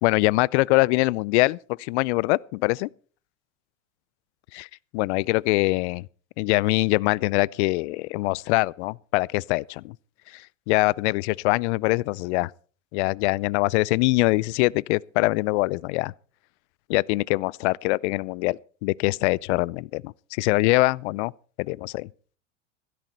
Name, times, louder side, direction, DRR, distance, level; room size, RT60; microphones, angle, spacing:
voice 1, 0.0-2.9 4.5-4.6 4.9-6.1 6.4-9.9 10.3-12.5 12.9-16.1 16.9-21.3 21.6-22.1, left 22 dB, 60° left, 0.5 m, -23 dB
16.0 x 13.0 x 4.3 m
hypercardioid pair, 90°, 38 cm